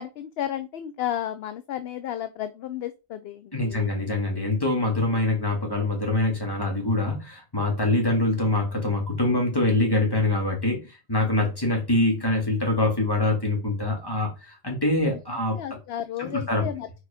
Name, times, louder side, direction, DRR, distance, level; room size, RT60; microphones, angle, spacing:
voice 1, 0.0-3.9 15.5-16.9, left 10 dB, 65° left, 0.7 m, -33 dB
voice 2, 3.5-15.6 16.2-16.6, left 2 dB, 20° left, 2.2 m, -24 dB
4.8 x 4.5 x 5.0 m
omnidirectional pair, 1.3 m